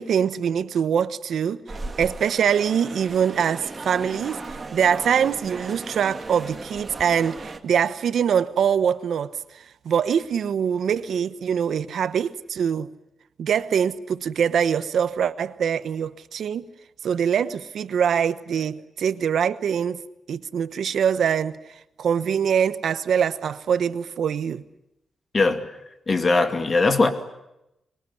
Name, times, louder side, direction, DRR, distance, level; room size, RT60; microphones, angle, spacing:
voice 1, 0.0-1.6 2.0-12.9 13.4-16.7 17.0-20.0 20.3-21.6 22.0-24.6, right 8 dB, 75° right, 1.0 m, -23 dB
sound 1, 1.7-7.6, right 3 dB, 25° right, 2.1 m, -37 dB
voice 2, 25.3-25.7 26.1-27.1, left 3 dB, 35° left, 2.4 m, -20 dB
25.5 x 22.0 x 9.7 m
wide cardioid pair, 130°, 0 cm